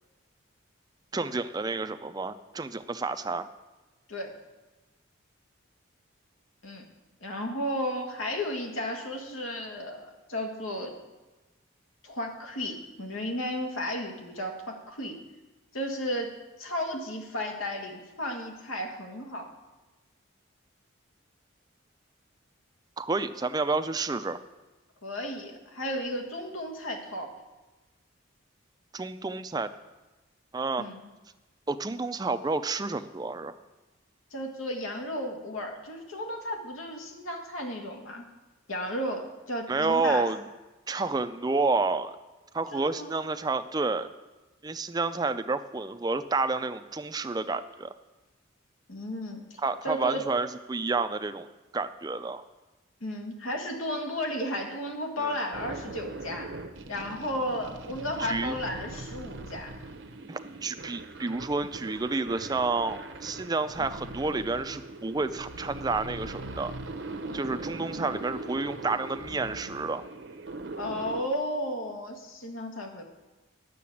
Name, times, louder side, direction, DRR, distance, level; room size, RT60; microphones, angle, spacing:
voice 1, 1.1-3.5 23.0-24.4 28.9-29.7 30.5-30.9 31.7-33.5 39.7-40.4 40.9-42.2 42.5-44.1 44.6-47.9 49.6-51.5 51.7-52.4 55.2-55.3 58.2-58.6 60.3-66.7 67.3-70.0, right 3 dB, 20° right, 10 dB, 0.4 m, -30 dB
voice 2, 7.2-10.9 12.0-15.2 15.7-19.5 25.0-27.3 30.8-31.0 34.3-38.2 38.7-40.2 42.7-43.1 48.9-49.6 49.8-50.2 53.0-56.5 56.9-59.7 70.8-73.0, left 1 dB, 90° left, 3 dB, 1.7 m, -34 dB
sound 1, 55.5-71.2, right 2 dB, 60° right, 0.8 m, -41 dB
10.0 x 6.8 x 8.4 m, 1.1 s
head